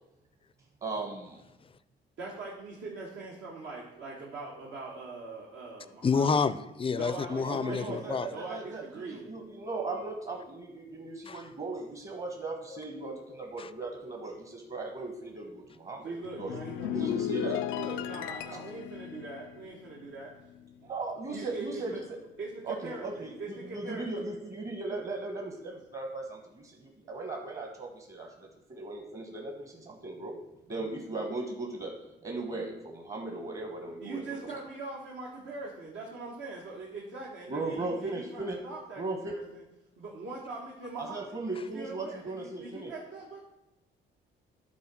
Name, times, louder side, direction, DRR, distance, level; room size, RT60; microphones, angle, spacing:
voice 1, 0.8-1.4 7.3-16.1 16.4-16.6 16.9-17.6 20.8-22.2 22.6-30.4 30.7-31.9 32.2-34.2 37.5-38.6 39.0-39.4 41.0-42.9, right 3 dB, 40° right, 2 dB, 1.3 m, -37 dB
voice 2, 2.2-6.4 7.0-9.2 16.0-20.3 21.3-22.0 22.4-24.1 34.0-39.6 40.0-43.4, right 3 dB, 75° right, -4 dB, 1.6 m, -42 dB
voice 3, 6.0-8.3 11.3-11.5 13.6-13.7, left 5 dB, 25° left, 16 dB, 0.4 m, -29 dB
sound 1, 16.2-20.9 21.1-21.5, left 11 dB, 85° left, 0.4 m, -36 dB
11.5 x 3.9 x 6.2 m, 0.95 s
cardioid pair, 90°, 20 cm